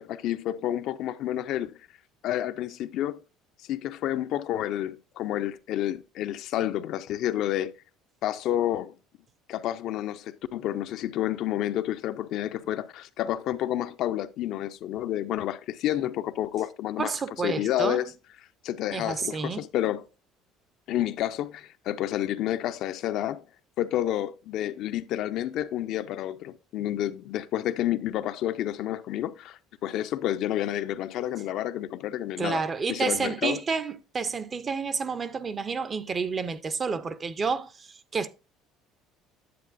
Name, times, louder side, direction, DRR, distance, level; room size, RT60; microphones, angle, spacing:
voice 1, 0.0-1.8 2.2-3.2 3.7-7.7 8.2-8.9 9.5-17.1 17.4-18.1 18.6-20.1 20.9-23.4 23.8-32.6 32.9-33.6, left 12 dB, 60° left, 0.4 m, -29 dB
voice 2, 17.0-18.0 18.9-19.7 32.4-38.3, right 5 dB, 30° right, 0.5 m, -30 dB
9.4 x 7.7 x 2.5 m
cardioid pair, 125°, 0 cm